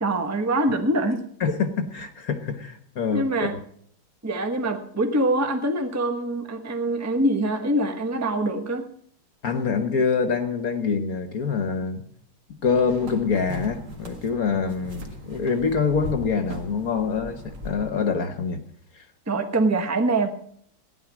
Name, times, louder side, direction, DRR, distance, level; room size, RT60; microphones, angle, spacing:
voice 1, 0.0-1.2 3.1-3.6 4.2-8.9 19.3-20.3, right 1 dB, 10° right, 0.8 m, -24 dB
voice 2, 1.4-3.5 9.4-12.0 12.6-18.6, left 5 dB, 50° left, 1.4 m, -25 dB
sound 1, 12.6-17.9, right 1 dB, 60° right, 2.6 m, -38 dB
15.0 x 10.5 x 6.1 m
omnidirectional pair, 2.3 m